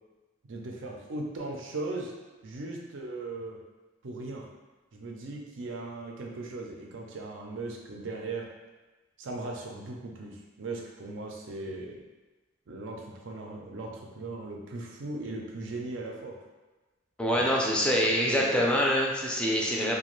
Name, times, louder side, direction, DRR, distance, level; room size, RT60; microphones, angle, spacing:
voice 1, 0.5-2.1 2.4-3.6 4.0-4.4 4.9-8.5 9.2-12.0 12.7-16.4 17.3-17.4 18.0-18.6, right 2 dB, 85° right, 0 dB, 0.5 m, -38 dB
voice 2, 17.2-19.9, equal, 5° left, -3 dB, 0.4 m, -25 dB
2.5 x 2.2 x 3.0 m, 1.2 s
head